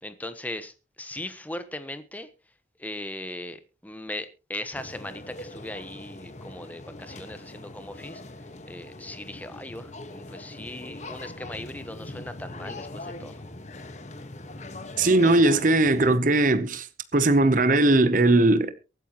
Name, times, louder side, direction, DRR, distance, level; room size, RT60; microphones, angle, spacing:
voice 1, 0.0-2.3 2.8-8.2 8.6-13.4, left 1 dB, 10° left, 1.1 m, -38 dB
sound 1, 4.7-16.2, left 2 dB, 40° left, 1.4 m, -41 dB
voice 2, 15.0-16.9 17.1-18.7, right 2 dB, 45° right, 0.9 m, -19 dB
23.5 x 9.1 x 3.0 m
head